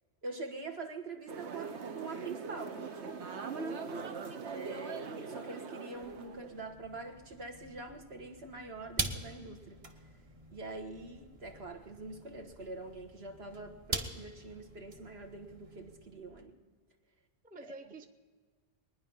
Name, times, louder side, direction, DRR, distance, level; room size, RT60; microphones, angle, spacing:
voice 1, 0.2-2.9 4.5-9.8 10.5-16.6 17.6-17.7, right 3 dB, 65° right, 3 dB, 1.7 m, -44 dB
sound 1, 1.3-6.7, right 5 dB, 85° right, 1.3 m, -41 dB
voice 2, 3.5-4.2 17.4-18.1, right 2 dB, 10° right, 7 dB, 0.6 m, -49 dB
sound 2, 5.9-16.4, right 2 dB, 30° right, 1.2 m, -44 dB
22.5 x 10.0 x 5.6 m, 1.5 s
omnidirectional pair, 1.1 m